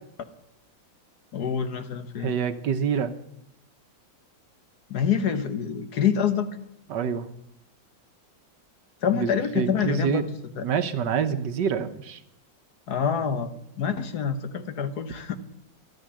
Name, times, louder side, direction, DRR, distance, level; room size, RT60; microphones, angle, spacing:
voice 1, 1.3-2.4 4.9-6.5 9.0-10.2 10.6-10.7 12.9-13.5 13.8-15.4, left 7 dB, 60° left, 9 dB, 1.5 m, -26 dB
voice 2, 2.2-3.1 6.9-7.3 9.1-10.2 10.6-12.2, right 7 dB, 70° right, 10 dB, 1.5 m, -26 dB
13.0 x 9.4 x 9.9 m, 0.78 s
omnidirectional pair, 2.0 m